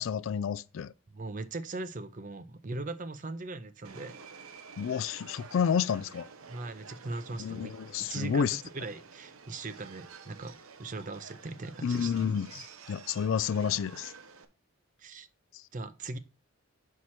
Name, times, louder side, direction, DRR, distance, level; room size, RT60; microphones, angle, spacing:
voice 1, 0.0-0.9 4.8-6.3 7.4-8.6 11.8-14.1, left 7 dB, 65° left, 0.3 m, -30 dB
voice 2, 1.1-4.2 6.5-7.7 8.1-12.1 15.0-15.3 15.7-16.2, right 3 dB, 35° right, 0.6 m, -39 dB
Subway metro underground, 3.8-14.4, right 5 dB, 75° right, 0.7 m, -50 dB
7.2 x 4.7 x 4.2 m
head